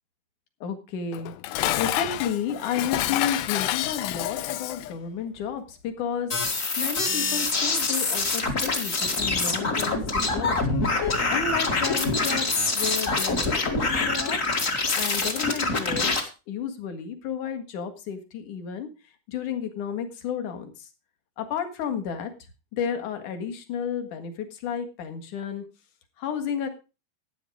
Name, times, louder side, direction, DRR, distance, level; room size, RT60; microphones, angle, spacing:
voice 1, 0.6-1.3 1.8-6.3 6.8-10.8 11.3-14.4 14.9-16.1 16.5-18.9 19.3-20.7 21.4-22.3 22.7-25.6 26.2-26.7, left 7 dB, 60° left, 6 dB, 2.8 m, -32 dB
Dishes pots and pans, 1.1-5.0, left 14 dB, 80° left, 2.5 m, -28 dB
sound 1, 6.3-16.2, left 3 dB, 35° left, 1.3 m, -25 dB
13.0 x 9.3 x 5.0 m, 0.31 s
omnidirectional pair, 4.6 m